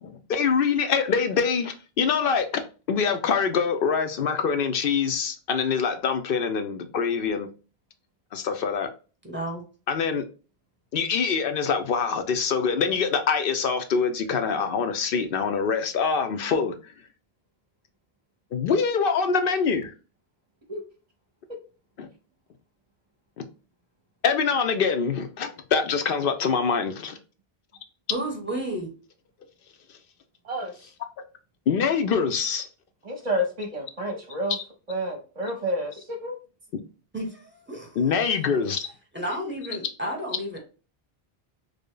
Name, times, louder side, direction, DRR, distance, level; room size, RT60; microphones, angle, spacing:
voice 1, 0.0-2.6 2.9-7.5 8.3-8.9 9.9-10.2 10.9-16.9 18.5-19.9 22.0-22.1 23.4-23.5 24.2-27.2 31.7-32.7 34.5-34.6 38.0-38.9, left 6 dB, 65° left, 0.7 m, -24 dB
voice 2, 9.2-9.6 28.1-28.9 37.1-38.1 39.1-40.6, right 1 dB, 10° right, 1.0 m, -32 dB
voice 3, 30.4-30.9 33.0-34.6 34.9-36.3, equal, 40° right, 0.7 m, -30 dB
3.3 x 2.1 x 3.7 m
omnidirectional pair, 1.1 m